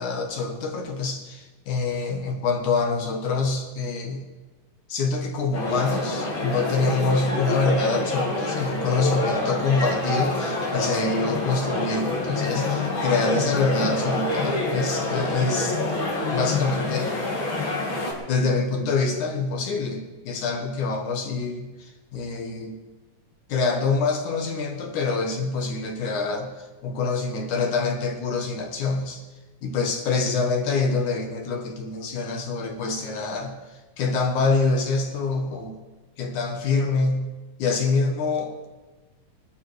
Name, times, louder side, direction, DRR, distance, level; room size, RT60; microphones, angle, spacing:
voice 1, 0.0-4.2 4.9-15.8 16.3-17.1 18.3-22.8 23.5-29.2 29.6-33.5 34.0-35.8 36.2-37.3 37.6-38.7, left 3 dB, 65° left, 3 dB, 2.8 m, -25 dB
sound 1, 5.5-18.1, left 2 dB, 35° left, 3.4 m, -27 dB
21.0 x 11.5 x 4.8 m, 1.2 s
omnidirectional pair, 3.9 m